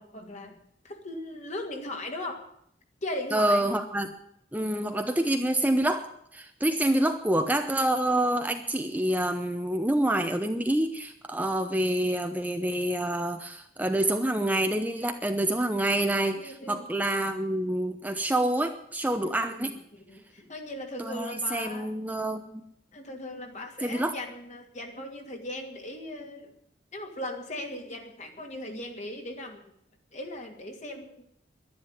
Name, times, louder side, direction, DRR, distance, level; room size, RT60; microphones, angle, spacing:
voice 1, 0.0-2.5 3.0-3.7 16.3-16.9 19.2-21.9 22.9-26.5 26.9-29.7 30.1-31.2, left 1 dB, 45° left, 3 dB, 2.5 m, -38 dB
voice 2, 3.3-4.1 4.5-19.7 21.0-22.6 23.8-24.1, right 1 dB, 10° right, 6 dB, 0.8 m, -27 dB
11.5 x 11.0 x 9.7 m, 0.72 s
head